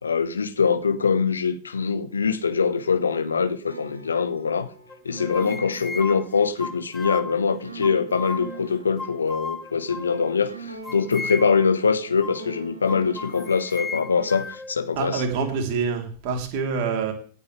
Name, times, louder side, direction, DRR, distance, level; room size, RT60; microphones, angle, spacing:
voice 1, 0.0-4.7 5.0-15.2, left 5 dB, 75° left, 1.4 m, -23 dB
sound 1, 3.5-14.4, right 3 dB, 85° right, 4.4 m, -43 dB
sound 2, 4.9-7.4 7.8-8.7 9.0-10.4 10.8-11.7 12.2-12.4 12.9-14.8, left 4 dB, 10° left, 0.7 m, -35 dB
voice 2, 15.0-17.1, right 5 dB, 45° right, 3.7 m, -26 dB
18.0 x 9.8 x 3.4 m
figure-of-eight pair, 90°, 0 cm